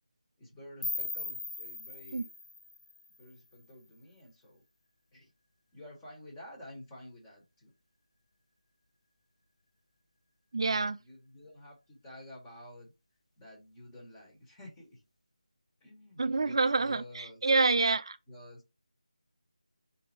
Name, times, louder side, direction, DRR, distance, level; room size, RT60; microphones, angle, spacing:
voice 1, 0.4-2.3 3.2-4.6 5.1-5.3 5.7-7.7 10.7-12.9 13.4-15.0 15.8-17.4 18.3-18.6, left 1 dB, 10° left, 1.3 m, -51 dB
sound 1, 0.8-3.7, left 3 dB, 55° left, 0.9 m, -39 dB
voice 2, 10.5-11.0 16.2-18.2, right 3 dB, 45° right, 0.4 m, -27 dB
3.6 x 2.7 x 4.4 m
figure-of-eight pair, 160°, 4 cm